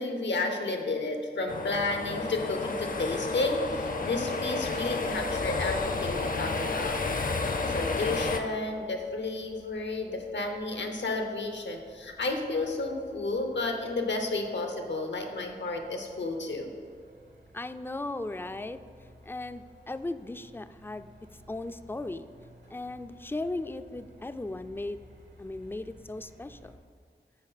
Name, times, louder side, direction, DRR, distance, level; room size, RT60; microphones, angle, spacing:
voice 1, 0.0-7.0 7.7-16.7, left 2 dB, 80° left, 4 dB, 0.9 m, -32 dB
sound 1, 1.5-8.4, left 3 dB, 50° left, 0.6 m, -31 dB
Truck, 8.1-26.8, equal, 85° right, 1.3 m, -56 dB
voice 2, 17.5-18.8 19.2-21.1 21.5-22.3 22.7-25.0 25.4-26.7, left 2 dB, 10° left, 11 dB, 0.3 m, -37 dB
9.5 x 4.5 x 4.1 m, 2.1 s
wide cardioid pair, 55°, 18 cm